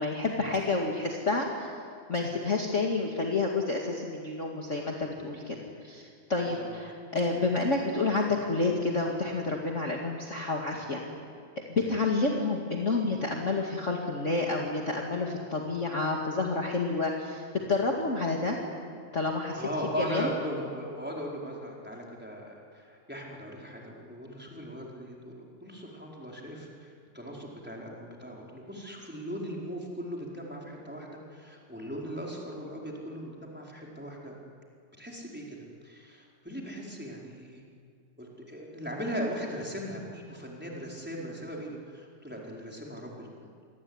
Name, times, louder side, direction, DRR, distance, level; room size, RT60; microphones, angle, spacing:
voice 1, 0.0-1.7 2.1-5.6 5.8-11.0 11.7-17.4 17.7-18.6 19.1-19.6 20.1-20.3, left 3 dB, 30° left, -1 dB, 1.5 m, -29 dB
voice 2, 6.4-6.8 10.7-10.8 19.6-34.3 35.0-35.6 35.8-37.6 38.2-43.3, equal, ahead, -2 dB, 4.2 m, -38 dB
28.5 x 21.5 x 9.8 m, 2.2 s
omnidirectional pair, 4.6 m